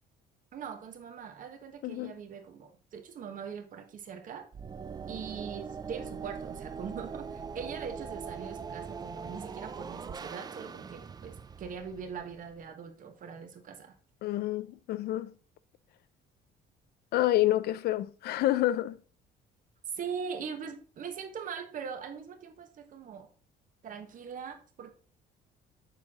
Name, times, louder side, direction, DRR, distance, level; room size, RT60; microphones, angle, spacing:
voice 1, 0.5-4.5 5.1-14.0 19.9-23.3 23.8-24.9, right 6 dB, 50° right, 1.3 m, -41 dB
voice 2, 1.8-2.2 14.2-15.3 17.1-19.0, left 14 dB, 70° left, 0.5 m, -28 dB
sound 1, 4.5-12.6, right 6 dB, 25° right, 0.4 m, -42 dB
6.7 x 4.7 x 3.7 m
cardioid pair, 110°, 17 cm